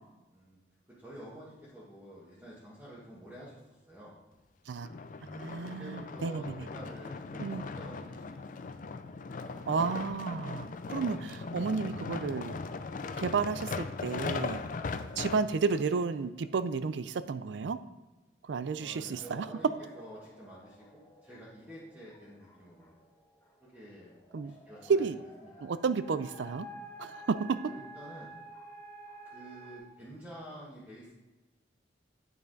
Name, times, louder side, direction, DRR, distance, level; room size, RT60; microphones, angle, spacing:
voice 1, 1.0-4.1 5.4-8.7 14.9-15.2 18.8-19.7 19.9-22.9 23.6-24.1 24.4-25.0 25.4-25.6 27.7-28.3 29.2-31.1, right 1 dB, 10° right, -8 dB, 1.4 m, -49 dB
sound 1, 4.8-15.8 16.5-16.6, left 4 dB, 45° left, 0.4 m, -39 dB
voice 2, 5.2-6.6 7.4-7.6 9.7-12.6 13.2-14.6 15.2-17.8 18.5-19.5 24.3-24.5 24.9-25.2 25.6-26.7 27.0-27.7, right 5 dB, 80° right, 14 dB, 0.4 m, -32 dB
sound 2, 19.1-29.8, right 1 dB, 20° left, 1.3 m, -51 dB
8.7 x 5.6 x 3.9 m, 1.1 s
head